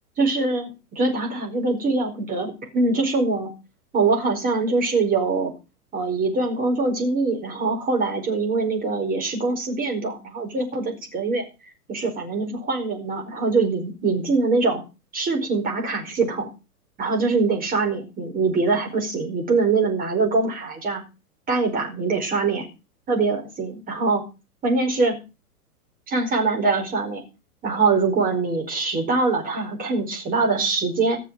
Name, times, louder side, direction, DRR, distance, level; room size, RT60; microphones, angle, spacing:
voice 1, 0.2-3.5 3.9-5.5 5.9-11.4 11.9-14.8 15.1-16.5 17.0-21.0 21.5-22.6 23.1-24.2 24.6-25.2 26.1-27.2 27.6-31.2, right 3 dB, 20° right, 1 dB, 5.1 m, -23 dB
15.5 x 7.0 x 7.6 m, 0.30 s
hypercardioid pair, 135°, 46 cm